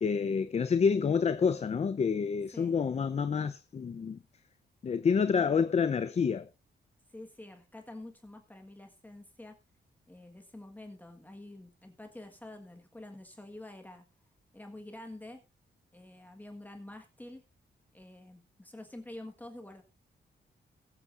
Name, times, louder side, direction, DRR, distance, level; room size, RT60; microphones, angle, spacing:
voice 1, 0.0-4.2 4.8-6.5, left 6 dB, 35° left, 0.6 m, -28 dB
voice 2, 7.1-9.6 10.1-14.0 14.5-15.4 15.9-17.4 17.9-19.8, left 1 dB, 10° left, 1.5 m, -48 dB
21.5 x 8.3 x 2.5 m
wide cardioid pair, 165°, 18 cm